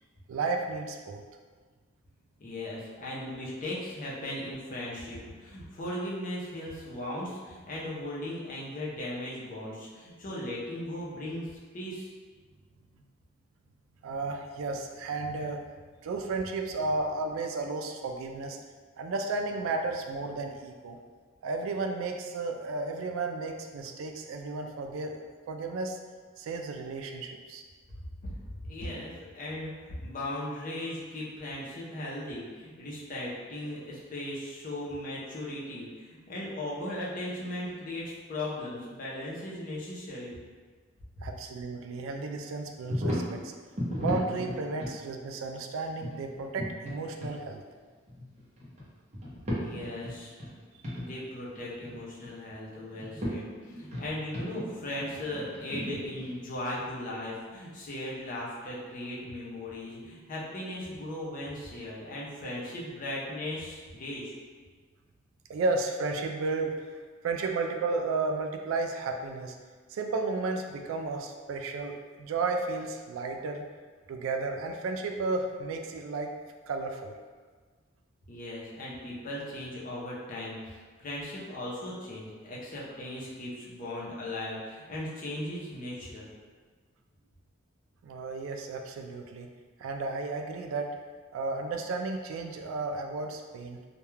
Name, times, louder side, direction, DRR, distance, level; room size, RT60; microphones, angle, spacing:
voice 1, 0.3-1.2 14.0-15.6 16.0-18.6 19.0-21.0 21.4-25.1 25.5-26.0 26.4-27.6 41.2-43.5 44.0-47.6 50.9-51.0 65.5-66.9 67.2-69.5 69.9-73.6 74.1-76.3 76.7-77.1 88.0-89.5 89.8-90.9 91.3-93.8, right 3 dB, 85° right, 5 dB, 0.3 m, -33 dB
voice 2, 2.4-11.5 11.7-12.1 28.6-40.4 41.2-41.3 49.6-50.3 50.9-64.3 78.3-86.3, left 1 dB, 45° left, -5 dB, 0.6 m, -37 dB
sound 1, 42.9-43.3 43.8-44.9 46.0-46.9 47.2-47.3 48.1-48.9 49.1-50.5 50.8-51.0 51.4-52.4 52.9-53.3 53.7-56.3, left 1 dB, 35° right, 0.7 m, -35 dB
2.2 x 2.2 x 3.1 m, 1.5 s
head